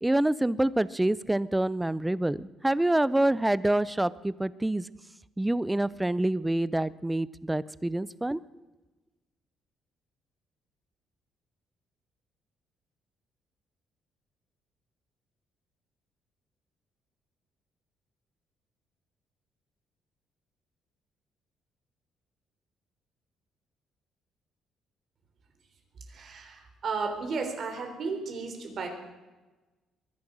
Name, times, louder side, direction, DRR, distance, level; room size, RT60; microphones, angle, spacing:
voice 1, 0.0-4.9 5.4-8.4, right 1 dB, 10° right, 18 dB, 0.5 m, -26 dB
voice 2, 26.1-28.9, right 4 dB, 50° right, 5 dB, 3.6 m, -34 dB
22.5 x 10.5 x 6.2 m, 1.2 s
cardioid pair, 140°, 0 cm